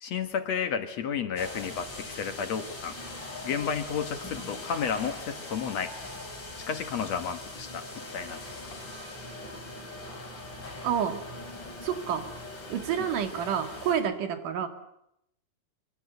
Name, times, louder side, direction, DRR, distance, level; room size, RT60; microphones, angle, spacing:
voice 1, 0.0-3.0 3.4-5.9 6.7-7.9 8.1-8.8 13.0-13.1, left 7 dB, 60° left, 9 dB, 2.5 m, -32 dB
sound 1, 1.4-14.0, left 2 dB, 35° left, 5.7 m, -41 dB
voice 2, 10.8-11.2 11.8-12.3 12.7-14.7, right 8 dB, 75° right, 7 dB, 3.6 m, -29 dB
24.0 x 24.0 x 8.2 m, 0.78 s
omnidirectional pair, 3.8 m